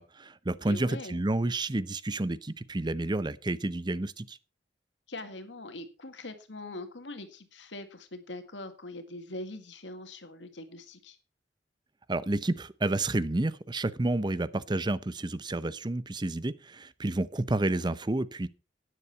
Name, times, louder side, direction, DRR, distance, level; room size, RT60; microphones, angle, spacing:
voice 1, 0.0-4.4 12.1-18.5, right 2 dB, 25° right, 0.6 m, -30 dB
voice 2, 0.6-1.2 5.1-11.2, left 2 dB, 85° left, 1.9 m, -42 dB
12.0 x 9.9 x 4.4 m
head